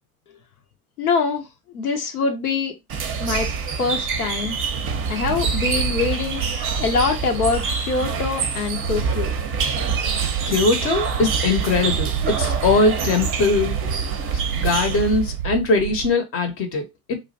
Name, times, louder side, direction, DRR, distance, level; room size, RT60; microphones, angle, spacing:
voice 1, 1.0-1.4 1.7-2.7 3.2-3.5 3.8-4.6 5.1-9.3, left 4 dB, 80° left, 0.6 m, -24 dB
sound 1, 2.9-15.4, right 5 dB, 30° right, 0.5 m, -26 dB
sound 2, 5.2-8.1 8.4-16.1, right 11 dB, 85° right, 0.6 m, -30 dB
voice 2, 10.5-13.8 14.3-17.3, left 3 dB, 30° left, 0.6 m, -21 dB
2.4 x 2.0 x 2.6 m
figure-of-eight pair, 70°, 43 cm